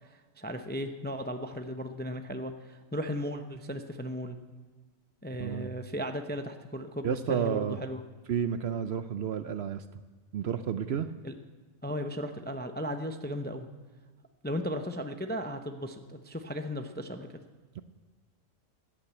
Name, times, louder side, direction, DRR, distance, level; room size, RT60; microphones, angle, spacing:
voice 1, 0.0-4.4 5.2-8.0 11.2-11.3 11.8-13.7 14.4-17.4, equal, 10° left, 7 dB, 0.4 m, -36 dB
voice 2, 5.4-5.7 7.0-7.8 8.3-9.8 10.3-11.1 17.8-17.9, right 8 dB, 60° right, 11 dB, 0.7 m, -31 dB
14.0 x 8.8 x 8.2 m, 1.3 s
omnidirectional pair, 1.4 m